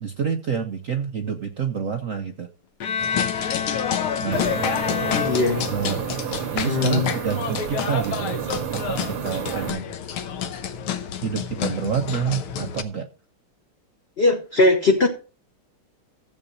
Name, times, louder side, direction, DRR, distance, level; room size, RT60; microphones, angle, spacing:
voice 1, 0.0-2.5 4.2-4.4 5.7-6.0 6.5-8.4 8.7-9.9 11.2-13.1, right 7 dB, 65° right, 6 dB, 0.8 m, -28 dB
Bowed string instrument, 2.8-6.1, left 7 dB, 60° left, 1.3 m, -29 dB
sound 1, 3.0-12.8, left 8 dB, 75° left, 1.8 m, -29 dB
Oil burner blower loop, 4.3-9.7, right 10 dB, 90° right, 1.9 m, -31 dB
voice 2, 5.1-5.7 6.6-7.1 14.2-15.1, left 2 dB, 35° left, 2 dB, 1.2 m, -20 dB
13.5 x 7.8 x 4.0 m, 0.34 s
omnidirectional pair, 2.4 m